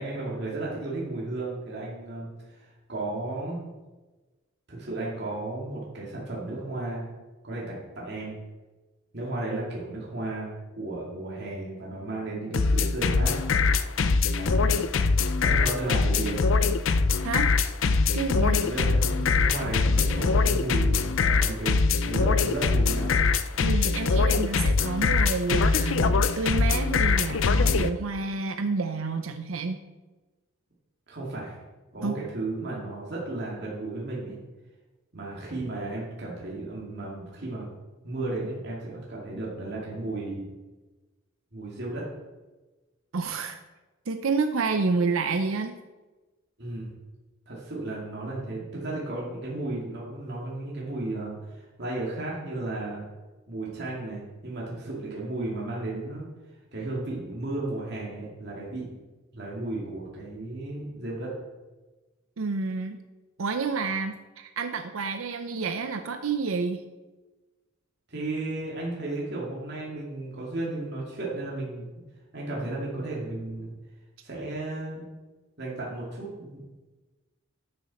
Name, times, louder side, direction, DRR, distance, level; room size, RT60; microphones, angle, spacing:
voice 1, 0.0-3.7 4.7-7.1 7.4-8.4 9.1-13.4 14.3-14.7 15.4-16.4 18.6-23.2 31.1-31.5 31.9-34.4 35.1-37.7 38.0-40.4 41.5-42.1 46.6-46.9 47.5-53.1 53.5-56.3 56.7-59.0 59.3-61.3 68.1-71.9 72.3-73.7 74.2-75.0 75.6-76.6, right 2 dB, 50° right, -5 dB, 2.5 m, -34 dB
sound 1, 12.5-27.9, left 4 dB, 65° left, 0.5 m, -23 dB
voice 2, 18.1-18.6 23.6-29.8 32.0-32.2 43.1-43.6 44.1-45.8 62.4-63.0 63.4-66.8, right 4 dB, 75° right, 7 dB, 0.6 m, -29 dB
12.0 x 7.1 x 4.2 m, 1.2 s
head